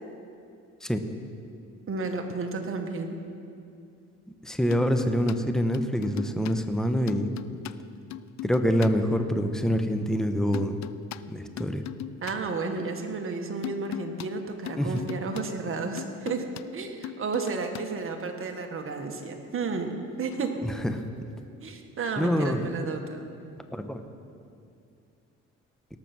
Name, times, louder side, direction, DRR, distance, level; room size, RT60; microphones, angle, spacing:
voice 1, 1.9-3.1 12.2-16.4 16.7-20.6 21.6-23.2, right 4 dB, 45° right, 4 dB, 1.5 m, -32 dB
voice 2, 4.4-7.3 8.4-10.8 11.3-11.8 14.8-15.0 20.6-21.0 22.2-22.7 23.7-24.0, equal, ahead, 7 dB, 0.9 m, -26 dB
sound 1, 4.7-5.4 5.7-6.6 7.1-8.9 10.5-11.2 11.6-12.4 13.6-14.3 14.6-15.4 16.0-16.6 17.0-17.8 20.3-20.4, left 13 dB, 65° left, 0.5 m, -39 dB
18.5 x 6.9 x 6.0 m, 2.4 s
cardioid pair, 90°, 30 cm